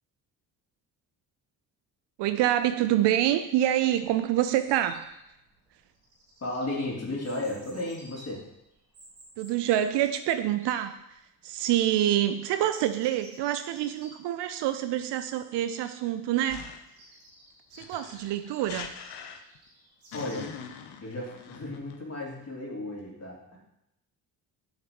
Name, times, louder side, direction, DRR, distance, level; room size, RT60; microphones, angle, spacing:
voice 1, 2.2-5.1 9.4-11.0 11.4-16.7 17.8-18.9, right 12 dB, 55° right, 10 dB, 0.6 m, -26 dB
Chirp tweet, 3.8-20.4, right 1 dB, 90° right, 1.3 m, -55 dB
voice 2, 6.4-8.4 20.1-20.5 21.0-23.6, left 2 dB, 30° left, -3 dB, 3.1 m, -34 dB
sound 1, 16.5-17.0 17.8-19.7 20.1-22.0, left 7 dB, 55° left, 0.9 m, -43 dB
10.5 x 6.4 x 3.0 m, 0.84 s
figure-of-eight pair, 40°, 49 cm